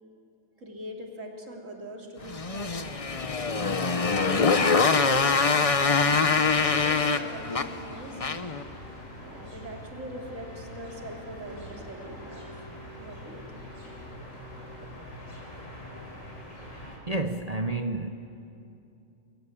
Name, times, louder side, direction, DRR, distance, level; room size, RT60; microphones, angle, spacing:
voice 1, 0.6-2.9 3.5-8.2 9.2-12.4 13.0-13.7, right 1 dB, 75° right, 0 dB, 3.5 m, -42 dB
sound 1, 2.2-17.0, left 1 dB, 80° left, 5.7 m, -44 dB
Motorcycle, 2.3-8.6, left 4 dB, 30° left, 0.9 m, -24 dB
voice 2, 16.7-18.1, right 2 dB, 30° right, 6 dB, 1.0 m, -31 dB
28.5 x 23.5 x 8.7 m, 2.8 s
omnidirectional pair, 1.3 m